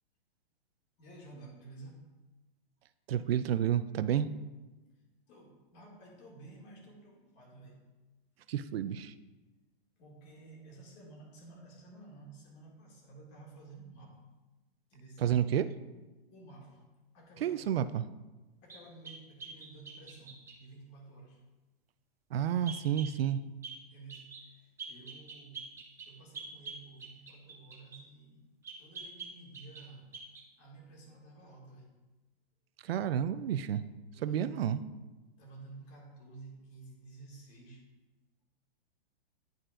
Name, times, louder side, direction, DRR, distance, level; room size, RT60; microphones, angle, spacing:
voice 1, 1.0-2.1 5.3-7.8 8.4-9.0 9.5-9.6 10.0-14.2 14.9-15.3 16.3-16.8 17.1-17.8 18.6-21.4 23.9-25.7 26.1-28.4 28.8-30.1 30.6-31.9 34.1-34.7 35.4-37.9, right 3 dB, 35° left, -2 dB, 2.1 m, -53 dB
voice 2, 3.1-4.3 8.5-9.1 15.2-15.7 17.4-18.1 22.3-23.4 32.8-33.8 34.2-34.8, right 9 dB, 75° right, 13 dB, 0.5 m, -30 dB
sound 1, 18.7-20.6 22.7-23.1 23.6-23.8 24.1-24.5 24.8-28.0 28.6-29.9 30.1-30.5, right 4 dB, 10° right, 0.7 m, -45 dB
10.5 x 4.5 x 2.5 m, 1.2 s
hypercardioid pair, 135°, 30 cm